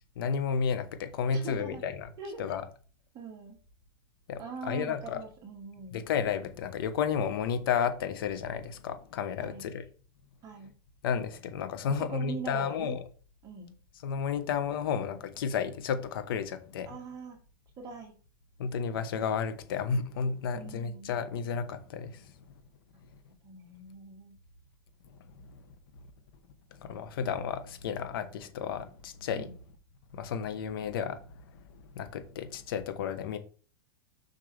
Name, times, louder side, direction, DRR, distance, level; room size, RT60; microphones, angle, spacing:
voice 1, 0.2-2.1 2.4-2.6 4.3-5.2 5.9-9.8 11.0-13.0 14.0-16.9 18.6-22.3 25.1-25.6 26.8-29.5 30.1-33.4, left 7 dB, 75° left, 1.3 m, -32 dB
voice 2, 1.3-1.8 2.2-2.4 3.1-3.6 4.4-6.0 9.4-9.7 10.4-10.7 11.9-13.0 13.4-13.7 16.9-17.4 17.8-18.1 20.5-21.1 23.4-24.4 29.4-29.5, right 5 dB, 30° right, 2.2 m, -42 dB
6.7 x 5.8 x 3.5 m
supercardioid pair, 140°, 12 cm